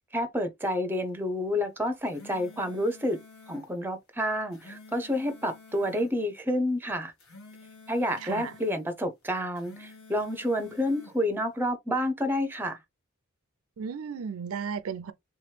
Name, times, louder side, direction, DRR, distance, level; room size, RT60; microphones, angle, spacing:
voice 1, 0.1-3.2 3.5-7.1 7.9-12.8, equal, 10° right, 0.6 m, -29 dB
sound 1, 1.9-3.7 4.3-6.1 7.0-8.8 9.4-11.2, left 3 dB, 75° left, 1.4 m, -51 dB
voice 2, 8.2-8.5 13.8-15.1, right 6 dB, 75° right, 0.4 m, -34 dB
3.4 x 3.0 x 3.2 m
head